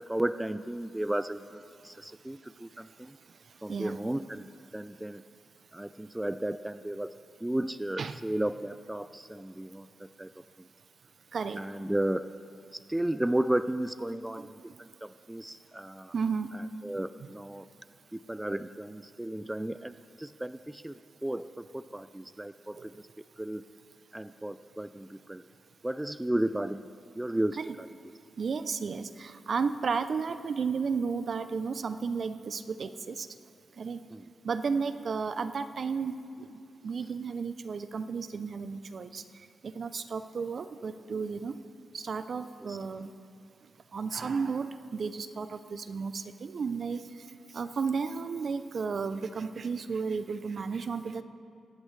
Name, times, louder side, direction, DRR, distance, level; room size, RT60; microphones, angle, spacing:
voice 1, 0.0-3.2 3.6-5.2 5.7-7.1 7.4-10.3 11.6-12.3 12.7-16.1 16.5-17.7 18.1-23.1 23.4-23.6 24.1-25.4 25.8-27.9 34.1-34.3 42.7-42.8, right 1 dB, 10° right, 13 dB, 0.4 m, -34 dB
voice 2, 11.3-11.6 14.4-14.5 16.1-16.5 17.2-17.3 22.8-22.9 27.6-27.7 28.4-33.3 33.8-34.0 34.4-36.5 36.8-39.2 39.6-41.6 41.9-43.1 43.9-47.1 47.5-51.2, right 5 dB, 60° right, 12 dB, 0.6 m, -33 dB
23.5 x 10.5 x 3.3 m, 2.6 s
cardioid pair, 55°, 0 cm